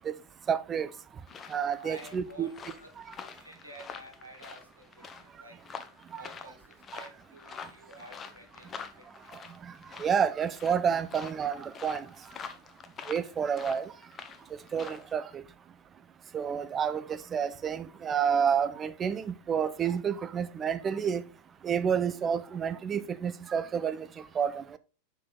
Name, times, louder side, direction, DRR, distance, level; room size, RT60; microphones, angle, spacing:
voice 1, 0.5-0.9 1.5-2.5 6.1-6.2 6.9-7.0 9.6-9.7 10.0-12.1 13.1-13.9 14.7-15.4 16.3-21.2 21.6-24.8, right 7 dB, 25° right, 0.5 m, -29 dB
sound 1, 1.3-15.1, left 6 dB, 25° left, 0.6 m, -47 dB
voice 2, 1.7-5.6 6.1-9.1, right 1 dB, 85° right, 1.4 m, -51 dB
5.7 x 4.7 x 3.7 m
figure-of-eight pair, 90°, 0 cm